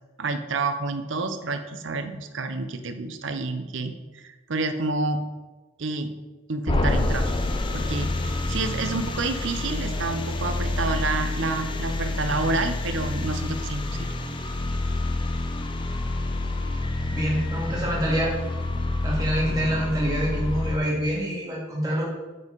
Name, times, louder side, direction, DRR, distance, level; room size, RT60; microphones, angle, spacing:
voice 1, 0.2-5.2 5.8-6.1 6.5-7.3 7.7-8.1 8.5-14.1, right 3 dB, 65° right, 8 dB, 0.7 m, -29 dB
sound 1, 6.7-20.8, left 2 dB, 25° left, 0.5 m, -28 dB
voice 2, 17.1-18.3 19.0-22.1, equal, 20° right, -4 dB, 2.1 m, -26 dB
7.5 x 5.4 x 3.9 m, 1.2 s
head